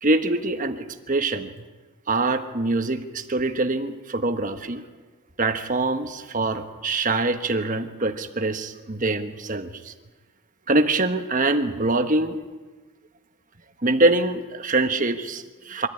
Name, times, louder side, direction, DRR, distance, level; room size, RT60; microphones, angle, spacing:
voice 1, 0.0-1.5 2.1-4.8 5.4-9.9 10.7-12.4 13.8-15.9, right 2 dB, 35° right, 7 dB, 1.3 m, -24 dB
24.0 x 14.0 x 9.8 m, 1.3 s
head